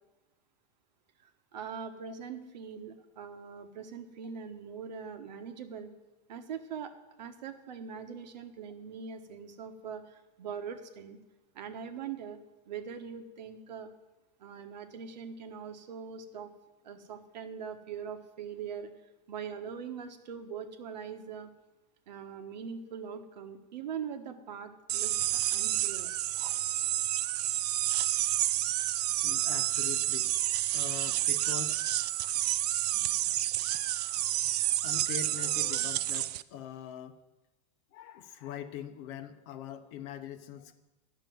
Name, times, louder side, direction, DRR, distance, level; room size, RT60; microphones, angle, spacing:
voice 1, 1.2-5.9 6.3-6.9 7.2-11.2 11.5-12.4 12.7-13.9 14.4-16.5 16.8-18.9 19.3-21.5 22.1-26.1, right 7 dB, 85° right, 8 dB, 1.4 m, -42 dB
sound 1, 24.9-36.4, right 14 dB, 70° right, 0.5 m, -30 dB
voice 2, 29.2-30.3 30.7-31.8 32.9-33.4 34.8-37.2 37.9-40.8, left 10 dB, 40° left, 9 dB, 0.7 m, -43 dB
11.5 x 6.8 x 9.3 m, 1.1 s
supercardioid pair, 160°, 21 cm